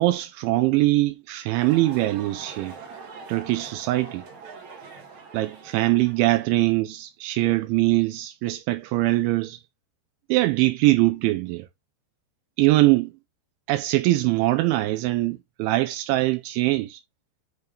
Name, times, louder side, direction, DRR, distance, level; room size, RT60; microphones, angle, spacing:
voice 1, 0.0-2.7 3.3-4.2 5.3-9.6 10.3-11.7 12.6-13.1 13.7-17.0, right 18 dB, 85° right, 2.8 m, -22 dB
sound 1, 1.6-6.5, right 4 dB, 60° right, 2.0 m, -43 dB
9.5 x 4.4 x 3.4 m
omnidirectional pair, 5.7 m